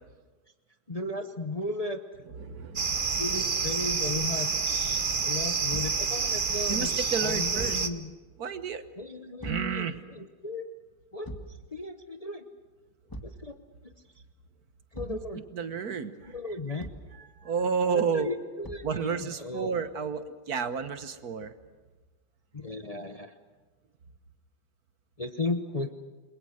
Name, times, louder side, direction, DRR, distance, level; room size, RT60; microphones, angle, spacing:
voice 1, 0.9-2.0 3.2-4.5 4.9-6.9 7.2-8.1 9.0-10.6 11.1-11.3 11.7-12.4 13.2-13.6 14.9-15.4 16.3-16.9 17.8-19.7 22.5-23.3 25.2-25.9, left 2 dB, 25° left, 6 dB, 0.9 m, -35 dB
voice 2, 2.4-3.2 6.7-7.8 8.4-8.9 9.4-10.0 15.1-15.2 15.5-16.3 16.8-16.9 17.1-18.3 18.8-21.5, right 6 dB, 60° right, 10 dB, 1.6 m, -31 dB
sound 1, 2.8-7.9, right 5 dB, 35° right, 1.1 m, -28 dB
Thump thud, 5.7-6.1 7.5-7.9 9.4-9.7 11.2-11.6 13.1-13.4 14.9-15.3 16.8-17.1 18.6-19.0, right 1 dB, 10° left, 1.7 m, -41 dB
29.0 x 22.0 x 6.4 m, 1.3 s
omnidirectional pair, 1.8 m